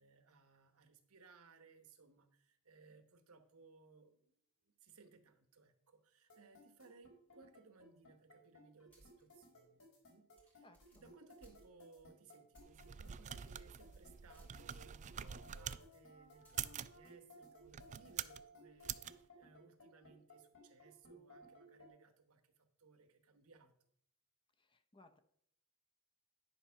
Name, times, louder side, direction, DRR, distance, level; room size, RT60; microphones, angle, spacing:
voice 1, 0.0-10.6 10.9-23.7, right 4 dB, 70° right, 8 dB, 1.1 m, -64 dB
sound 1, 6.3-21.9, left 1 dB, 65° left, 4.1 m, -60 dB
sound 2, 8.9-9.2 9.7-9.8 10.4-12.0 12.5-12.8 13.2-13.3 14.3-15.0 16.4-16.7, right 1 dB, 5° left, 3.4 m, -65 dB
voice 2, 10.6-11.1 24.6-25.2, left 2 dB, 20° left, 10 dB, 0.7 m, -65 dB
sound 3, 12.6-15.8 16.4-17.0 17.7-18.4 18.8-19.1, right 9 dB, 35° right, 0.3 m, -45 dB
10.0 x 4.4 x 5.7 m, 0.70 s
head